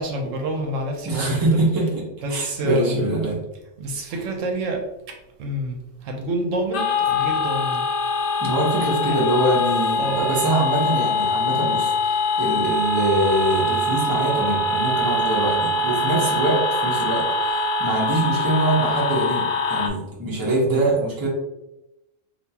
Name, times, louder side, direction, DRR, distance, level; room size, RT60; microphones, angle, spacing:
voice 1, 0.0-1.6 2.2-3.1 3.8-7.8 10.0-10.2 20.7-20.8, right 1 dB, 75° right, 2 dB, 1.0 m, -28 dB
voice 2, 1.0-2.0 2.3-3.4 8.4-21.3, right 1 dB, 20° right, -3 dB, 0.7 m, -23 dB
sound 1, 6.7-19.9, left 2 dB, 65° left, 0.5 m, -23 dB
3.5 x 2.6 x 2.8 m, 0.92 s
omnidirectional pair, 1.4 m